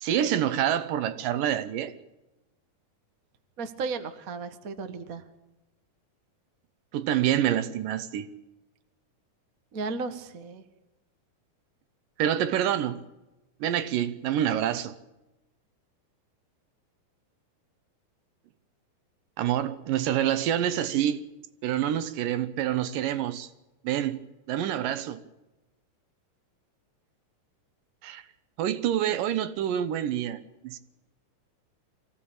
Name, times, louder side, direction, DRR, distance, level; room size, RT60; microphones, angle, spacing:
voice 1, 0.0-1.9 6.9-8.3 12.2-13.0 13.6-14.9 19.4-21.2 21.6-23.5 23.8-25.2 28.0-28.2 28.6-30.8, right 11 dB, 75° right, 2.5 m, -27 dB
voice 2, 3.6-5.2 9.7-10.6, right 4 dB, 55° right, 0.9 m, -34 dB
24.0 x 16.5 x 8.8 m
omnidirectional pair, 4.1 m